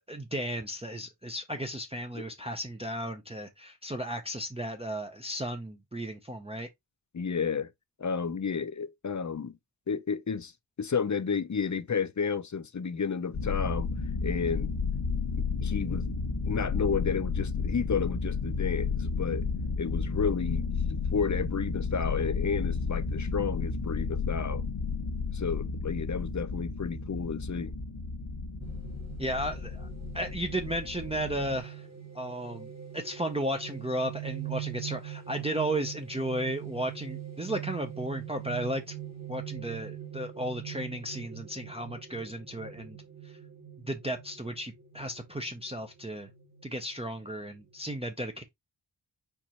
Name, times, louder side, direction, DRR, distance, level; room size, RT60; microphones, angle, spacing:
voice 1, 0.1-6.7 29.2-29.9 30.1-31.9 32.1-32.7 32.9-39.0 39.3-43.0 43.2-43.3 43.9-46.3 46.6-48.4, right 1 dB, 15° right, 0.6 m, -34 dB
voice 2, 7.1-7.7 8.0-9.6 9.9-10.5 10.8-13.9 14.2-14.7 15.6-16.1 16.4-19.5 19.8-20.7 21.1-24.6 25.3-27.7, left 6 dB, 40° left, 0.6 m, -31 dB
sound 1, 13.3-31.6, left 4 dB, 85° left, 1.1 m, -32 dB
sound 2, 28.6-47.8, right 11 dB, 35° right, 1.6 m, -43 dB
4.6 x 2.5 x 4.2 m
wide cardioid pair, 60°, 44 cm